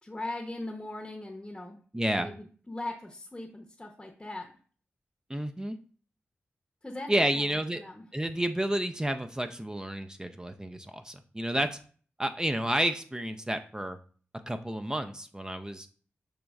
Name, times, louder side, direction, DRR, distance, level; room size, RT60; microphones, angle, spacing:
voice 1, 0.0-1.8 2.2-4.5 6.8-7.1 7.3-8.0, left 2 dB, 15° left, 1 dB, 0.8 m, -39 dB
voice 2, 1.9-2.3 5.3-5.8 7.1-7.8 8.1-11.7 12.2-14.0 14.5-15.9, right 1 dB, 15° right, 7 dB, 0.4 m, -30 dB
6.3 x 2.9 x 2.3 m, 0.43 s
cardioid pair, 45°, 5 cm